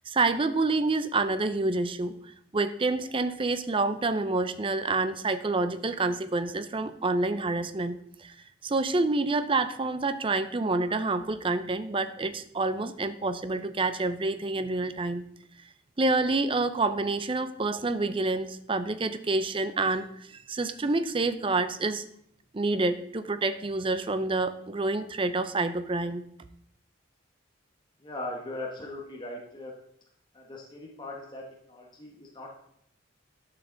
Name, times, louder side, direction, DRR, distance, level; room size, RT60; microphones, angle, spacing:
voice 1, 0.1-2.1 2.5-8.3 8.6-15.2 16.0-22.0 22.5-26.2, right 3 dB, 25° right, 11 dB, 0.5 m, -28 dB
voice 2, 28.0-29.7 30.3-32.5, left 1 dB, 25° left, -2 dB, 1.1 m, -39 dB
12.0 x 5.8 x 3.9 m, 0.70 s
head